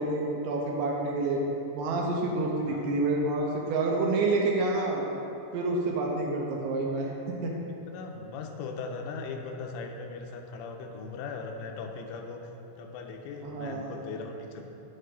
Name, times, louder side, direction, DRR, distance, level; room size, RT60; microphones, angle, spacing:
voice 1, 0.0-1.4 1.7-5.0 5.5-7.1 7.4-7.5 13.4-13.9, right 2 dB, 80° right, -1 dB, 2.9 m, -28 dB
voice 2, 2.6-3.0 7.9-12.5 12.8-14.6, left 4 dB, 85° left, 3 dB, 3.1 m, -39 dB
8.9 x 8.5 x 3.8 m, 3.0 s
omnidirectional pair, 5.7 m